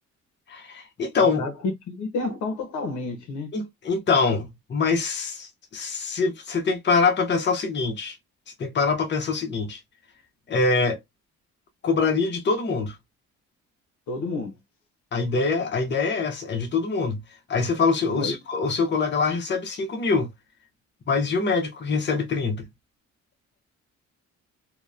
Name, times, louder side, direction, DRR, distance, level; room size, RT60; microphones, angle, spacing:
voice 1, 0.5-1.4 3.5-8.1 8.6-9.8 10.5-11.0 11.8-12.9 15.1-17.2 17.5-20.3 21.1-22.7, left 4 dB, 35° left, 0.8 m, -24 dB
voice 2, 1.2-3.5 14.1-14.5 18.1-18.4, left 3 dB, 75° left, 0.8 m, -30 dB
2.8 x 2.1 x 2.3 m
cardioid pair, 90°, 30 cm